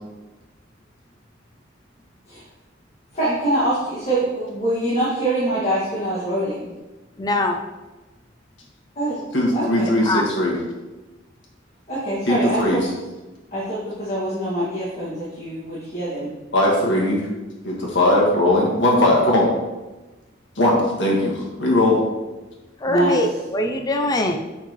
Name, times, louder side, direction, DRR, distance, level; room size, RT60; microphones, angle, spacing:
voice 1, 3.1-6.7 9.0-9.2 9.5-10.0 11.9-12.8 13.5-16.3 22.9-23.2, right 1 dB, 35° left, -10 dB, 2.0 m, -24 dB
voice 2, 7.2-7.6 10.1-10.2 22.8-24.4, left 1 dB, 20° left, 4 dB, 0.4 m, -22 dB
voice 3, 9.3-10.6 12.3-12.9 16.5-17.2 17.6-19.5 20.6-22.0, left 1 dB, 70° left, -3 dB, 1.7 m, -19 dB
7.6 x 5.6 x 3.1 m, 1.1 s
head